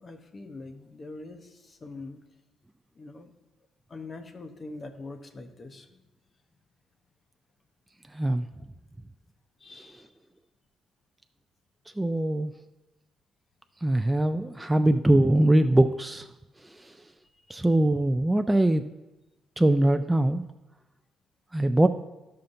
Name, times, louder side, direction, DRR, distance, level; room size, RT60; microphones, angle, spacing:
voice 1, 0.0-2.2 2.9-3.3 3.9-6.0 9.6-10.1 17.5-17.6, left 3 dB, 35° left, 7 dB, 0.8 m, -43 dB
voice 2, 8.1-8.4 12.0-12.5 13.8-16.3 16.7-16.9 17.5-18.8 19.6-20.4 21.5-21.9, right 1 dB, 10° right, 7 dB, 0.3 m, -22 dB
13.5 x 5.6 x 2.6 m, 1.0 s
cardioid pair, 90°, 0 cm